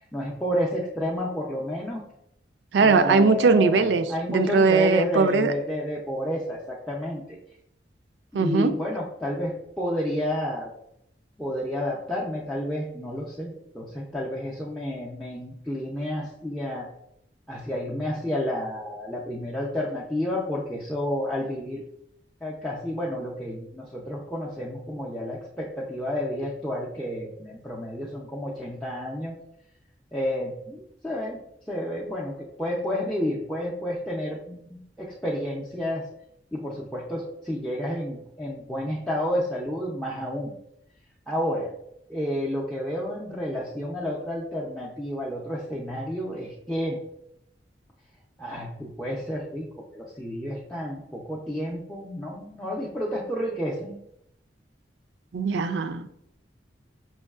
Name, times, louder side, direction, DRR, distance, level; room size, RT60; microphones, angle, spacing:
voice 1, 0.1-2.0 2.8-7.2 8.3-10.7 11.4-16.9 17.5-21.8 22.4-29.4 30.1-31.4 31.7-36.1 36.5-40.5 41.3-41.7 42.1-47.0 48.4-54.0, equal, 5° left, -5 dB, 0.4 m, -30 dB
voice 2, 2.7-5.5 8.3-8.7 55.3-56.1, right 4 dB, 80° right, 10 dB, 0.4 m, -20 dB
5.4 x 3.0 x 2.3 m, 0.75 s
head